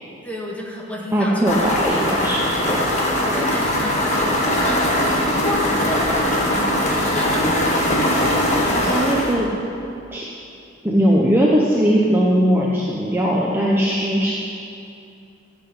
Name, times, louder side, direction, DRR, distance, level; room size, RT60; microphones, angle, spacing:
voice 1, 0.2-1.8 3.2-8.1, equal, 5° left, -4 dB, 1.9 m, -31 dB
voice 2, 1.1-2.9 8.5-9.5 10.1-10.2 10.8-14.3, equal, 10° right, -4 dB, 1.0 m, -19 dB
sound 1, 1.5-9.3, left 1 dB, 35° left, 1.9 m, -20 dB
13.5 x 8.1 x 8.0 m, 2.6 s
head